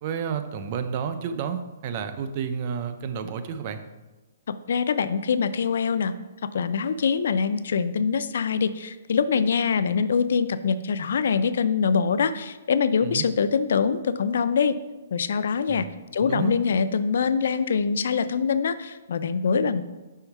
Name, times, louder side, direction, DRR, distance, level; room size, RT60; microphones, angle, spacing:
voice 1, 0.0-3.8 13.0-13.3 15.7-15.9 16.2-16.5, right 7 dB, 35° right, 9 dB, 0.5 m, -30 dB
voice 2, 4.5-6.1 6.5-14.8 15.1-19.8, left 6 dB, 70° left, 13 dB, 0.3 m, -24 dB
5.6 x 4.4 x 4.6 m, 1.1 s
hypercardioid pair, 160°, 0 cm